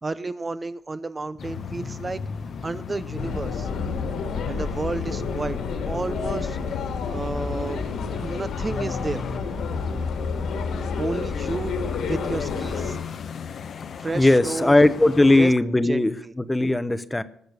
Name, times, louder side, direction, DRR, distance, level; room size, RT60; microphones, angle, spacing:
voice 1, 0.0-2.2 2.6-3.7 4.5-5.6 5.9-6.6 7.1-7.9 8.2-9.2 11.0-11.8 12.1-13.0 14.0-14.8 15.3-15.5 15.8-16.3, right 3 dB, 25° right, 13 dB, 0.6 m, -31 dB
sound 1, 1.4-15.6, left 5 dB, 55° left, 0.8 m, -35 dB
sound 2, 3.2-12.9, left 5 dB, 75° left, 2.3 m, -30 dB
voice 2, 14.1-17.2, left 2 dB, 15° left, 14 dB, 0.9 m, -19 dB
19.5 x 6.8 x 6.7 m, 0.68 s
cardioid pair, 90°, 0 cm